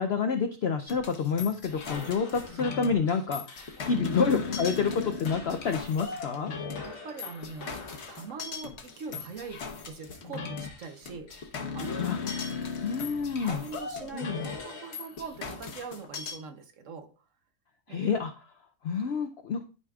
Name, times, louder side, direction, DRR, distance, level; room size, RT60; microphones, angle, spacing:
voice 1, 0.0-6.5 12.0-12.2 12.8-13.6 14.1-14.5 17.9-18.5 18.8-19.6, left 5 dB, 70° left, 6 dB, 0.6 m, -28 dB
sound 1, 0.9-16.4, left 5 dB, 50° left, 1.1 m, -37 dB
sound 2, 1.7-10.3 10.6-13.6 14.2-15.4, left 3 dB, 85° left, 1.9 m, -50 dB
voice 2, 6.8-7.7 8.1-11.3 11.7-12.2 13.4-17.2 17.9-18.0, right 5 dB, 60° right, 7 dB, 1.0 m, -42 dB
11.0 x 4.9 x 2.3 m, 0.36 s
omnidirectional pair, 1.6 m